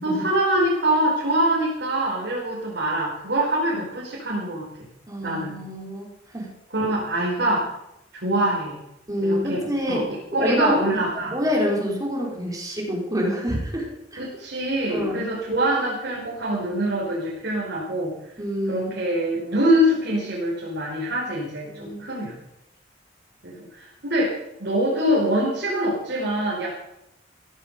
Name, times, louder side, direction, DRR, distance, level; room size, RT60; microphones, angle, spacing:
voice 1, 0.0-4.9 5.2-5.5 6.7-7.7 8.1-8.8 9.2-10.0 10.3-11.4 14.2-18.1 18.7-22.4 23.4-26.8, right 1 dB, 60° right, -5 dB, 4.1 m, -24 dB
voice 2, 5.1-6.1 6.3-6.5 9.1-10.1 10.4-11.0 11.3-14.2 14.9-15.2 18.4-18.9 21.6-22.1, equal, 20° right, -2 dB, 4.7 m, -27 dB
15.5 x 14.5 x 5.3 m, 0.86 s
head